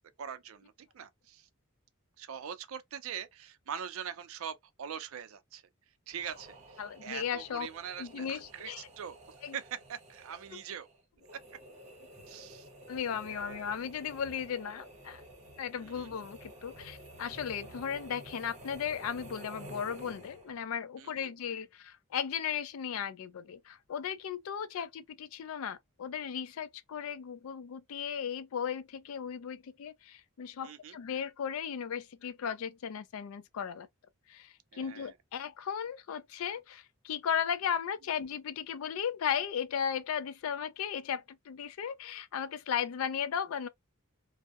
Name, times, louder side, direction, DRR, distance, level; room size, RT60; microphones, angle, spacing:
voice 1, 0.2-1.5 2.2-5.6 6.1-10.9 11.3-11.4 12.3-12.7 13.2-13.8 15.8-16.2 21.0-21.3 30.6-31.0 34.7-35.1, right 8 dB, 70° right, 0.4 m, -43 dB
sound 1, 6.1-20.7, right 1 dB, 35° right, 0.7 m, -51 dB
voice 2, 6.8-7.7 8.0-8.9 9.4-9.6 12.9-15.2 15.6-33.9 34.3-43.7, left 8 dB, 70° left, 0.4 m, -36 dB
2.7 x 2.0 x 2.3 m
head